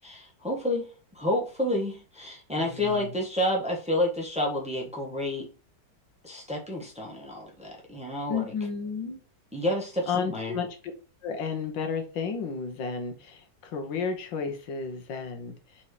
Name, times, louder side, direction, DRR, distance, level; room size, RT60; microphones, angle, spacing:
voice 1, 0.0-5.5 6.2-8.5 9.5-10.6, left 1 dB, 5° right, -1 dB, 1.3 m, -30 dB
voice 2, 2.6-3.1 8.3-9.2 10.1-10.7 11.2-15.8, left 5 dB, 90° left, 5 dB, 1.9 m, -32 dB
4.7 x 4.3 x 4.9 m, 0.35 s
omnidirectional pair, 1.9 m